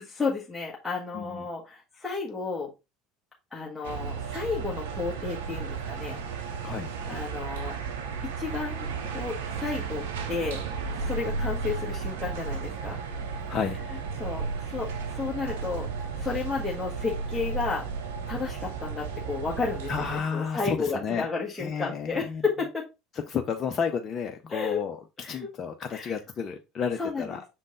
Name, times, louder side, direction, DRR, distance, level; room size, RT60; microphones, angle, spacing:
voice 1, 0.0-2.7 3.5-6.2 7.1-7.7 8.4-10.6 11.0-13.0 14.2-15.9 16.2-17.8 18.3-22.8 24.5-24.8 25.2-25.5 25.9-26.1 27.0-27.4, left 4 dB, 10° left, 1.7 m, -32 dB
voice 2, 1.1-1.5 6.6-6.9 13.5-13.8 19.9-21.3 21.6-22.4 23.1-27.4, left 6 dB, 35° left, 0.8 m, -31 dB
sound 1, 3.8-20.2, right 5 dB, 70° right, 0.9 m, -34 dB
6.4 x 3.8 x 3.8 m
figure-of-eight pair, 70°, 0 cm